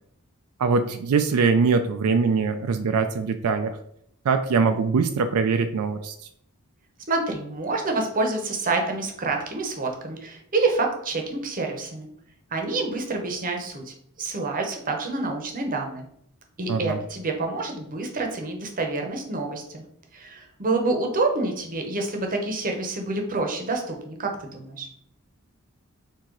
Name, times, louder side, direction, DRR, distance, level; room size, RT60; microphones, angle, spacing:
voice 1, 0.6-3.8 4.3-6.1 16.7-17.0, right 5 dB, 85° right, 7 dB, 0.4 m, -22 dB
voice 2, 7.1-12.1 12.5-16.1 16.6-19.8 20.1-24.9, right 3 dB, 40° right, 3 dB, 0.8 m, -27 dB
4.5 x 2.8 x 3.8 m, 0.70 s
head